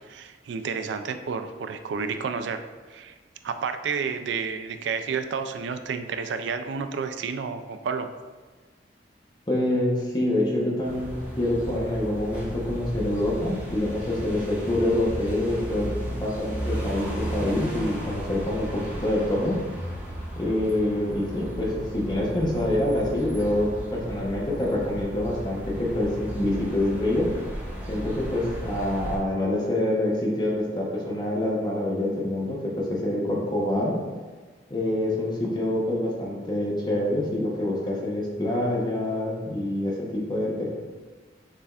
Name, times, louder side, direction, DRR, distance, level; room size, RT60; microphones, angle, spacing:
voice 1, 0.1-3.1 3.4-8.1, right 5 dB, 80° right, 8 dB, 0.3 m, -31 dB
voice 2, 9.5-11.1 11.4-15.9 16.2-19.5 20.4-27.3 27.9-34.0 34.7-40.7, left 1 dB, 25° left, -4 dB, 0.8 m, -26 dB
sound 1, 10.8-29.2, equal, 10° right, 0.8 m, -35 dB
6.6 x 3.4 x 2.4 m, 1.4 s
head